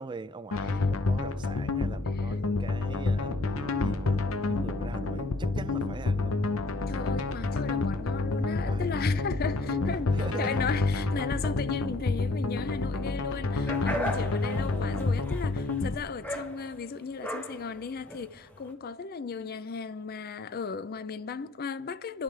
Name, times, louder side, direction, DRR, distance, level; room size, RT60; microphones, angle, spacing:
voice 1, 0.0-3.4 3.8-6.4 8.3-8.9 9.7-10.6, right 3 dB, 20° right, 0.4 m, -42 dB
sound 1, 0.5-15.9, left 3 dB, 85° left, 0.8 m, -29 dB
voice 2, 2.1-2.4 6.9-22.2, left 5 dB, 45° left, 0.5 m, -36 dB
sound 2, 3.2-15.1, equal, 50° right, 1.2 m, -43 dB
sound 3, 13.7-18.7, equal, 10° left, 1.1 m, -37 dB
27.5 x 11.5 x 3.3 m
head